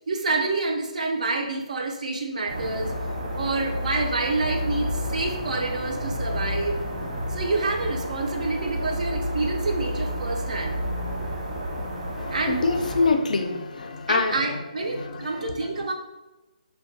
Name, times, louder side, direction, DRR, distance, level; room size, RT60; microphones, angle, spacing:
voice 1, 0.1-2.9 3.3-6.8 7.3-10.8 12.3-12.6 14.1-15.9, right 3 dB, 65° right, 1 dB, 0.4 m, -28 dB
sound 1, 2.5-13.1, equal, 85° right, 1.0 m, -30 dB
voice 2, 12.2-14.3 14.9-15.2, left 4 dB, 70° left, 6 dB, 0.4 m, -25 dB
2.6 x 2.2 x 2.5 m, 1.1 s
hypercardioid pair, 175°, 4 cm